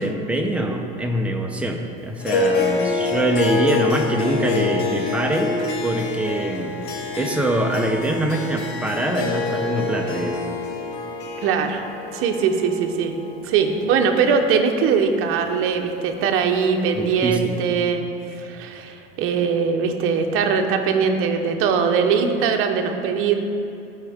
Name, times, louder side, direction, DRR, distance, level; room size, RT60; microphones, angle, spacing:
voice 1, 0.0-6.8 7.2-10.4 17.0-17.6, right 1 dB, 5° right, 1 dB, 0.7 m, -24 dB
Harp, 2.2-14.8, left 4 dB, 45° left, 1.0 m, -27 dB
voice 2, 11.4-11.8 12.1-13.2 13.5-18.0 18.4-23.3, right 6 dB, 45° right, 4 dB, 0.9 m, -21 dB
14.0 x 4.8 x 3.6 m, 2.8 s
supercardioid pair, 125°, 30 cm